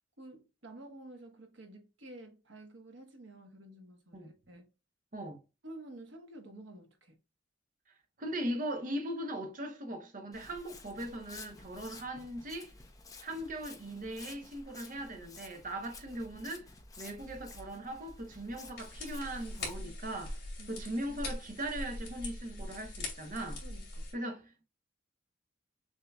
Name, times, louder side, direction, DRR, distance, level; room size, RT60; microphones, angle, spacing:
voice 1, 0.2-4.7 5.6-7.2 19.8-19.9 20.6-20.8 23.6-24.1, right 1 dB, 80° right, 1.3 m, -51 dB
voice 2, 8.2-12.7 13.2-16.7 17.0-20.4 20.7-23.6 24.1-24.6, right 1 dB, 45° right, 0.9 m, -39 dB
Walk footsteps, 10.3-19.7, left 3 dB, 20° left, 0.7 m, -52 dB
sound 1, 18.8-24.1, left 2 dB, 60° left, 2.6 m, -42 dB
6.5 x 2.9 x 2.3 m
head